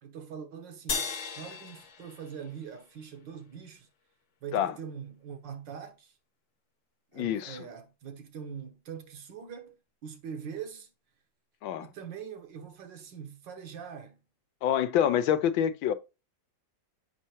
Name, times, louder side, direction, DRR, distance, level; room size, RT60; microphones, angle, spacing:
voice 1, 0.0-3.9 4.4-6.1 7.1-9.8 10.0-10.9 11.8-14.2, right 7 dB, 70° right, 1.8 m, -43 dB
sound 1, 0.9-3.5, left 5 dB, 45° left, 1.1 m, -37 dB
voice 2, 7.1-7.7 11.6-11.9 14.6-15.9, left 10 dB, 85° left, 1.5 m, -26 dB
8.0 x 5.6 x 2.9 m
omnidirectional pair, 2.1 m